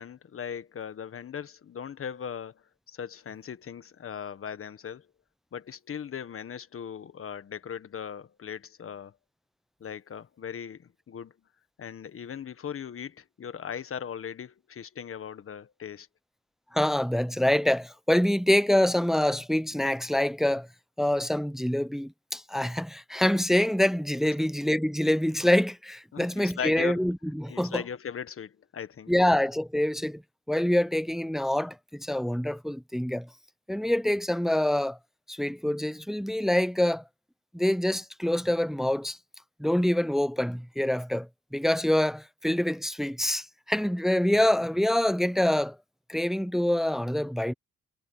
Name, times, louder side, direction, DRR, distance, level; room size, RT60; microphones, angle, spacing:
voice 1, 0.0-5.1 5.5-9.1 9.8-11.3 11.8-16.1 26.1-27.0 27.5-29.1, left 8 dB, 45° left, 1.5 m, -38 dB
voice 2, 16.7-20.7 21.0-27.8 29.1-30.2 30.5-33.3 33.7-35.0 35.3-37.0 37.5-39.2 39.6-45.8 46.1-47.5, left 1 dB, ahead, 0.5 m, -26 dB
cardioid pair, 90°, 30 cm